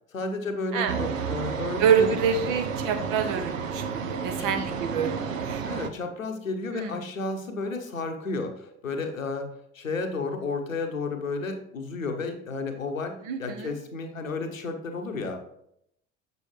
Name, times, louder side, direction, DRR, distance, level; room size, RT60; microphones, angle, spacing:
voice 1, 0.1-2.2 4.4-4.6 5.6-9.5 9.7-15.4, left 3 dB, 85° left, 5 dB, 1.0 m, -32 dB
sound 1, 0.9-5.9, right 6 dB, 80° right, 0.7 m, -31 dB
voice 2, 1.8-5.6 6.7-7.0 13.2-13.7, right 7 dB, 55° right, 6 dB, 1.2 m, -26 dB
6.9 x 6.7 x 3.2 m, 0.73 s
figure-of-eight pair, 65°, 39 cm